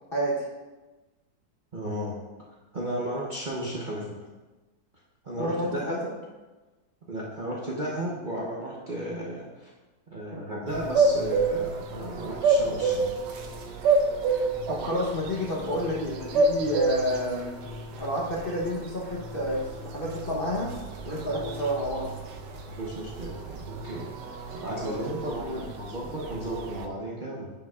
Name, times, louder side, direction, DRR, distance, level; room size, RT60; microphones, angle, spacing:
voice 1, 0.1-0.4 5.4-6.0 14.7-17.5 18.0-20.7 21.0-22.1 24.8-25.7, equal, 40° left, -4 dB, 1.0 m, -30 dB
voice 2, 1.7-2.2 2.7-4.1 5.2-6.0 7.1-9.7 10.1-13.1 22.8-24.1 24.5-27.5, right 1 dB, 40° right, -5 dB, 0.8 m, -34 dB
sound 1, 10.7-26.8, right 3 dB, 85° right, 1.3 m, -29 dB
9.7 x 5.4 x 2.4 m, 1.2 s
omnidirectional pair, 1.8 m